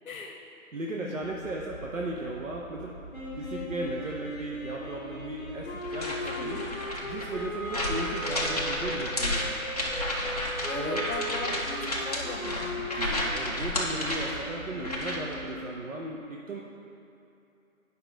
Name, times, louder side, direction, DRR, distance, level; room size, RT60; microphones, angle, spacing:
voice 1, 0.0-0.4 1.0-1.3 6.4-6.7 10.7-12.8, left 4 dB, 75° left, 2 dB, 0.9 m, -39 dB
voice 2, 0.7-2.9 3.4-6.6 7.0-9.6 10.7-11.0 12.8-16.6, right 2 dB, 65° right, -1 dB, 0.8 m, -36 dB
sound 1, 1.2-15.5, right 2 dB, 20° right, 1.7 m, -46 dB
sound 2, 3.1-15.7, left 1 dB, 10° left, 1.3 m, -38 dB
sound 3, 5.8-15.3, left 1 dB, 30° left, 0.6 m, -32 dB
8.2 x 5.5 x 3.8 m, 2.7 s
hypercardioid pair, 175°, 42 cm